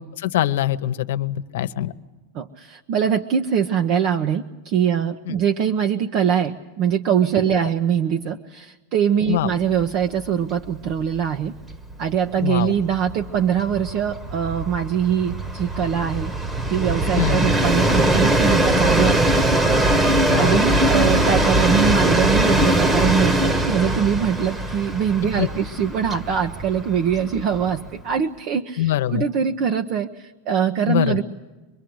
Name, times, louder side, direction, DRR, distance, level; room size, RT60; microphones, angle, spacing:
voice 1, 0.0-1.9 5.3-5.4 9.3-9.5 12.4-12.7 17.2-17.4 20.2-20.6 25.4-25.5 28.8-29.2 30.9-31.2, left 13 dB, 75° left, 12 dB, 1.0 m, -23 dB
voice 2, 2.3-11.5 12.0-16.3 16.7-19.3 20.4-31.2, right 8 dB, 50° right, 6 dB, 1.0 m, -22 dB
Train, 9.7-9.9 10.2-10.3 10.6-28.0, right 1 dB, 15° right, 1.4 m, -21 dB
25.0 x 21.5 x 7.9 m, 1.2 s
supercardioid pair, 130°, 0 cm